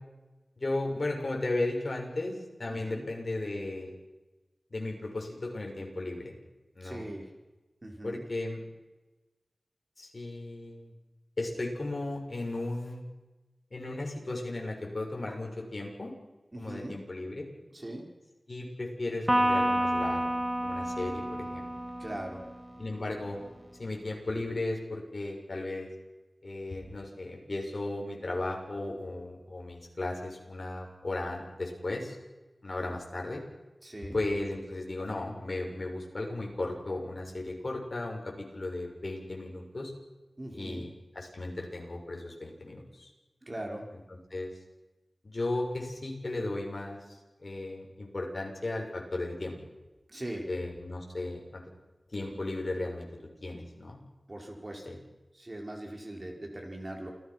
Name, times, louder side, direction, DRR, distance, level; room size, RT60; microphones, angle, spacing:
voice 1, 0.6-3.9 4.7-6.3 6.7-7.1 8.0-8.6 10.0-10.9 11.4-13.0 13.7-16.1 16.6-17.5 18.5-20.2 20.6-21.7 22.8-23.4 23.8-25.9 26.4-32.2 32.6-33.4 34.1-39.9 40.5-43.1 44.1-44.5 45.2-47.0 47.4-49.6 50.5-51.6 52.1-53.1 53.4-54.0 54.8-55.0, left 2 dB, 50° left, 0 dB, 6.7 m, -35 dB
voice 2, 2.7-3.1 6.8-7.3 7.8-8.2 16.5-17.0 17.7-18.1 22.0-22.4 33.8-34.2 40.4-40.8 43.4-43.9 50.1-50.5 54.3-54.9 55.4-57.1, right 1 dB, 30° right, 1 dB, 5.2 m, -40 dB
Electric guitar, 19.3-22.8, right 1 dB, 5° right, 2.3 m, -29 dB
28.5 x 18.0 x 6.2 m, 1.1 s
wide cardioid pair, 75°, 0 cm